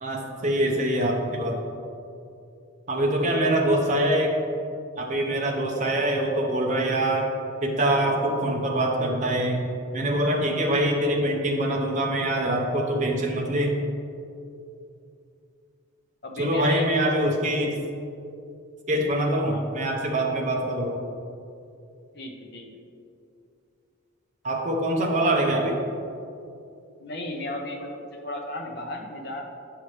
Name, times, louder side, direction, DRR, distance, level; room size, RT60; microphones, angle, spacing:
voice 1, 0.0-1.6 2.9-4.4 5.0-7.3 7.6-9.6 9.9-13.8 16.4-17.7 18.9-21.0 24.4-25.8, right 1 dB, 35° right, 0 dB, 0.7 m, -24 dB
voice 2, 3.2-3.6 16.2-17.1 19.5-19.6 22.1-22.7 27.0-29.4, left 1 dB, 50° left, 1 dB, 0.7 m, -34 dB
7.7 x 5.6 x 3.3 m, 2.6 s
head